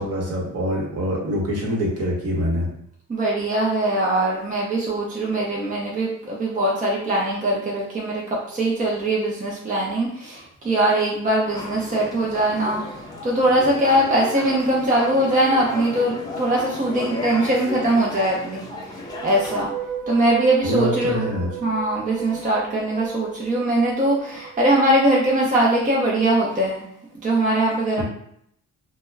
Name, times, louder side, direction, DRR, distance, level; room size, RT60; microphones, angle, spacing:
voice 1, 0.0-2.7 20.6-21.5 28.0-28.1, equal, 55° right, -2 dB, 1.0 m, -25 dB
voice 2, 3.1-18.6 19.2-19.7 20.1-21.3 21.6-26.9 27.2-28.0, right 1 dB, 25° right, -4 dB, 0.6 m, -21 dB
sound 1, 11.5-19.6, left 2 dB, 15° left, 0.6 m, -34 dB
sound 2, 19.0-26.2, right 8 dB, 85° right, 0.5 m, -36 dB
2.3 x 2.2 x 3.2 m, 0.69 s
cardioid pair, 90°, 30 cm